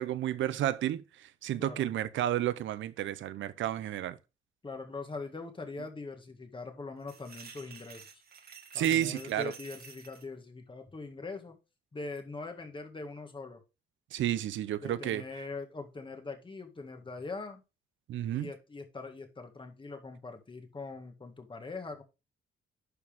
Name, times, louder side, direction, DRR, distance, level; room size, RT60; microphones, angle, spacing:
voice 1, 0.0-4.2 8.7-9.5 14.1-15.2 18.1-18.5, right 12 dB, 75° right, 0.8 m, -31 dB
voice 2, 4.6-8.2 8.7-11.6 11.9-13.6 14.8-17.6 18.3-22.0, left 3 dB, 25° left, 2.0 m, -42 dB
sound 1, 7.0-10.2, right 5 dB, 50° right, 1.8 m, -51 dB
11.0 x 4.7 x 3.6 m
cardioid pair, 90°, 20 cm